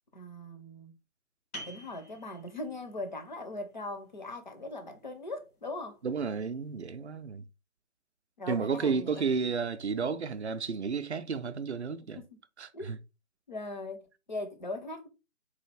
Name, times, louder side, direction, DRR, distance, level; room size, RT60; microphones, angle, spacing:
voice 1, 0.1-0.9 1.6-6.0 8.4-9.2 12.1-12.2 12.7-12.9 13.5-15.1, left 2 dB, 35° left, 0.6 m, -40 dB
sound 1, 1.5-6.9, right 1 dB, 80° left, 1.6 m, -51 dB
voice 2, 6.0-7.5 8.5-12.2 12.6-13.0, right 5 dB, 50° right, 0.4 m, -32 dB
4.1 x 2.5 x 4.3 m
figure-of-eight pair, 145°, 43 cm